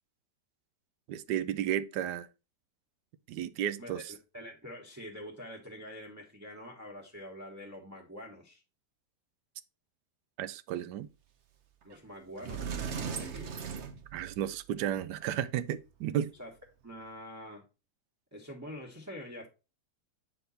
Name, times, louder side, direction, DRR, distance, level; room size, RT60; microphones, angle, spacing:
voice 1, 1.1-2.3 3.3-4.1 10.4-11.1 14.1-16.3, right 10 dB, 85° right, 1.2 m, -33 dB
voice 2, 3.8-8.6 11.8-13.6 16.4-16.5 16.8-17.7 18.3-19.5, equal, 10° right, 1.1 m, -45 dB
Sliding door, 11.9-12.0 12.4-14.6, right 6 dB, 50° right, 1.0 m, -38 dB
8.0 x 4.5 x 4.0 m
omnidirectional pair, 1.8 m